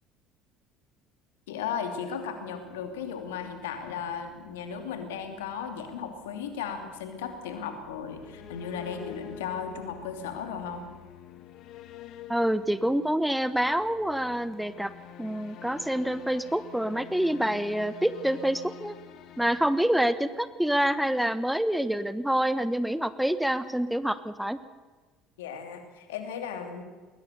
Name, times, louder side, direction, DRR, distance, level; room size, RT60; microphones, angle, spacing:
voice 1, 1.5-10.9 25.4-26.8, left 7 dB, 75° left, 7 dB, 2.8 m, -36 dB
sound 1, 1.7-10.9, right 1 dB, 80° right, 5.6 m, -57 dB
sound 2, 7.8-20.7, left 10 dB, 55° left, 1.8 m, -47 dB
voice 2, 12.3-14.9 15.2-18.9 19.4-24.6, right 1 dB, 5° right, 14 dB, 1.1 m, -27 dB
21.0 x 20.0 x 6.8 m, 1.4 s
figure-of-eight pair, 60°, 0 cm